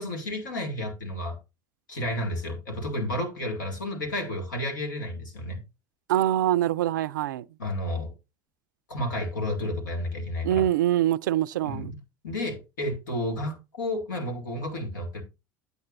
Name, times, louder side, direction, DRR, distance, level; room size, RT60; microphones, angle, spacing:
voice 1, 0.0-1.4 1.9-5.6 7.6-8.1 8.9-10.7 11.6-11.9 12.2-15.2, left 1 dB, 85° left, 2.1 m, -31 dB
voice 2, 6.1-7.4 10.4-11.9, right 12 dB, 80° right, 0.4 m, -24 dB
8.8 x 8.1 x 2.5 m
hypercardioid pair, 80°, 10 cm